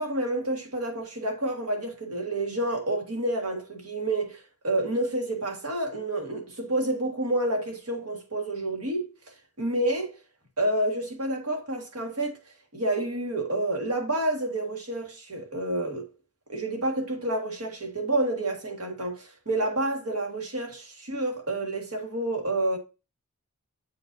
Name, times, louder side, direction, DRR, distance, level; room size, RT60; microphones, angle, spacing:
voice 1, 0.0-9.1 9.6-10.1 10.6-12.4 12.7-16.1 16.5-22.8, right 1 dB, 80° right, 1.8 m, -29 dB
7.8 x 5.2 x 2.6 m
head